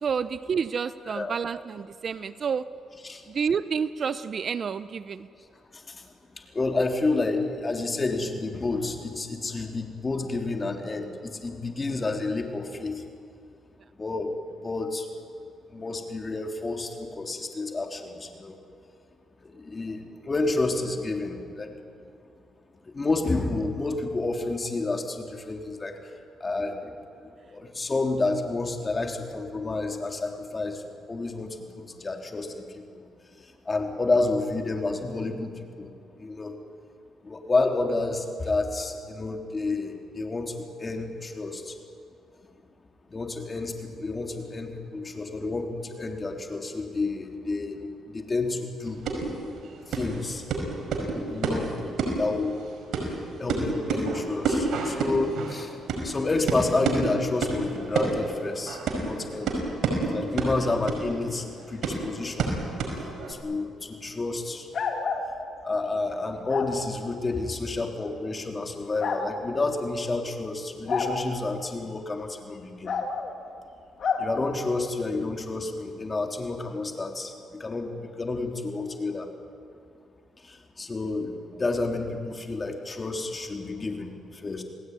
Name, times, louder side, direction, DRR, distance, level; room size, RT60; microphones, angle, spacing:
voice 1, 0.0-2.6 3.3-5.3, right 6 dB, 50° right, 14 dB, 0.8 m, -29 dB
voice 2, 1.1-1.4 3.0-3.2 5.4-5.5 5.7-13.0 14.0-15.1 15.7-18.6 19.4-21.8 22.8-26.0 26.4-27.0 27.4-33.0 33.4-35.9 36.2-36.6 37.2-41.8 43.1-49.0 49.8-50.5 51.3-51.7 52.1-52.6 53.1-55.8 56.0-59.6 60.0-62.5 63.0-64.7 65.6-72.9 74.2-79.3 80.4-84.6, left 3 dB, 25° left, 3 dB, 3.5 m, -30 dB
sound 1, 48.9-63.3, right 3 dB, 70° right, 5.4 m, -30 dB
sound 2, 64.7-65.3 66.5-66.7 68.0-68.1 69.0-69.2 70.9-71.1 72.9-73.3 74.0-74.2, left 5 dB, 55° left, 3.2 m, -28 dB
28.5 x 18.5 x 9.5 m, 2.4 s
cardioid pair, 90°, 0 cm